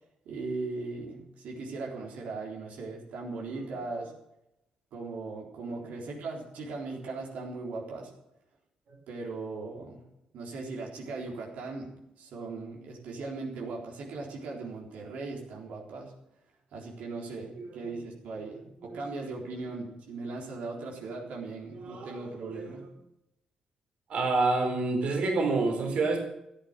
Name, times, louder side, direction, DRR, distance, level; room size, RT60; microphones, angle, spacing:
voice 1, 0.3-4.1 4.9-8.1 9.1-10.0 10.3-16.1 16.7-22.9, right 3 dB, 80° right, -2 dB, 4.0 m, -38 dB
voice 2, 21.7-22.9 24.1-26.2, right 3 dB, 55° right, 2 dB, 4.1 m, -28 dB
14.0 x 10.5 x 6.7 m, 0.84 s
cardioid pair, 145°, 2 cm